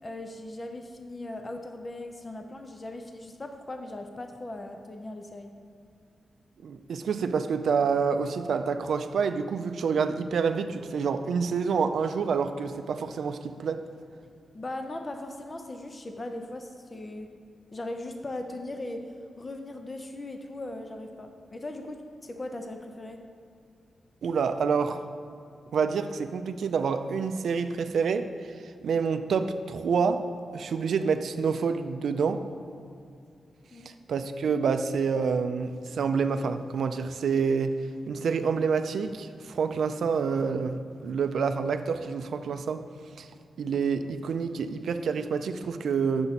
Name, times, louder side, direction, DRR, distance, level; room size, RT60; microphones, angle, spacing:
voice 1, 0.0-5.5 14.5-17.3 17.7-23.3 33.7-34.0, left 1 dB, 20° left, 5 dB, 0.5 m, -39 dB
voice 2, 6.6-13.9 24.2-25.0 25.7-30.3 30.5-32.5 33.9-37.8 38.1-42.9 43.2-43.3 43.6-46.3, right 5 dB, 70° right, 8 dB, 0.4 m, -28 dB
8.7 x 6.9 x 4.1 m, 2.4 s
wide cardioid pair, 180°, 0 cm